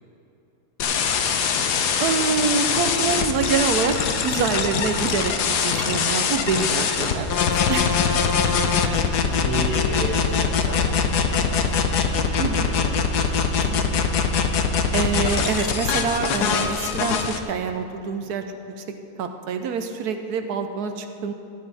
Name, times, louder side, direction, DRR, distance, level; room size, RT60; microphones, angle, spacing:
sound 1, 0.8-17.4, left 6 dB, 90° left, 1.4 m, -22 dB
voice 1, 2.0-4.0 4.2-7.4 7.7-7.9 12.4-12.7 14.9-18.4 19.2-21.3, right 5 dB, 75° right, 6 dB, 1.3 m, -25 dB
voice 2, 8.3-8.6 9.4-14.0, equal, 70° left, -5 dB, 3.1 m, -34 dB
15.5 x 10.0 x 4.1 m, 2.7 s
omnidirectional pair, 1.7 m